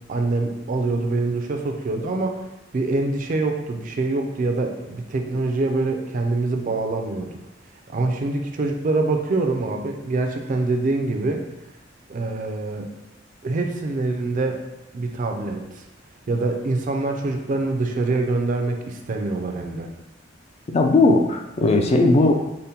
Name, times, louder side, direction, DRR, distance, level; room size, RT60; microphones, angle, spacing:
voice 1, 0.1-2.4 2.7-7.3 7.9-11.4 12.1-12.9 13.4-14.6 14.9-15.8 16.3-19.9, right 2 dB, 45° right, 4 dB, 0.4 m, -25 dB
voice 2, 20.7-22.3, left 2 dB, 35° left, 4 dB, 0.3 m, -17 dB
5.1 x 2.1 x 2.8 m, 0.96 s
head